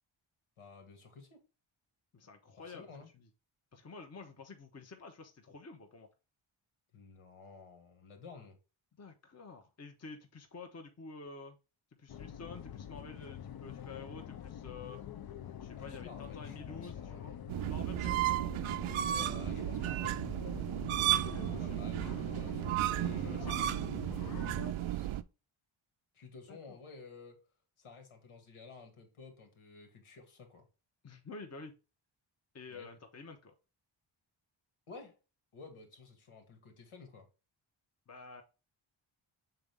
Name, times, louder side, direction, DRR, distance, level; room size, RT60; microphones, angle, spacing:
voice 1, 0.6-1.4 2.7-3.1 6.9-8.6 15.8-17.3 19.1-20.3 21.6-23.4 24.8-25.2 26.1-27.4 27.8-30.7 32.7-32.9 34.9-35.2 35.5-37.3, left 4 dB, 85° left, 2.1 m, -52 dB
voice 2, 2.1-3.3 3.7-6.1 9.0-11.6 12.0-15.0 15.6-17.4 17.7-18.3 21.0-21.8 23.3-23.8 26.5-26.8 31.0-31.7 32.5-33.5 38.1-38.4, left 4 dB, 30° left, 0.9 m, -49 dB
sound 1, 12.1-24.7, left 9 dB, 50° left, 0.6 m, -46 dB
sound 2, 17.5-25.2, right 13 dB, 80° right, 0.6 m, -34 dB
7.0 x 3.9 x 3.5 m
wide cardioid pair, 155°, 49 cm